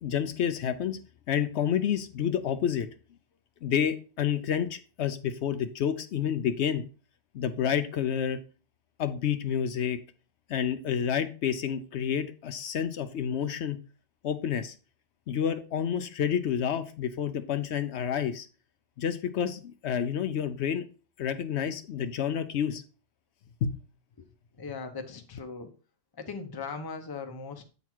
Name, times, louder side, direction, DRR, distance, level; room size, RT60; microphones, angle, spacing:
voice 1, 0.0-1.0 1.3-2.9 3.6-6.8 7.3-8.4 9.0-10.0 10.5-13.8 14.2-14.7 15.3-18.5 19.0-20.8 21.2-22.8 23.6-23.8, left 8 dB, 70° left, 0.9 m, -29 dB
voice 2, 24.6-25.7 26.1-27.7, left 4 dB, 25° left, 0.7 m, -39 dB
8.3 x 4.1 x 4.4 m
omnidirectional pair, 1.2 m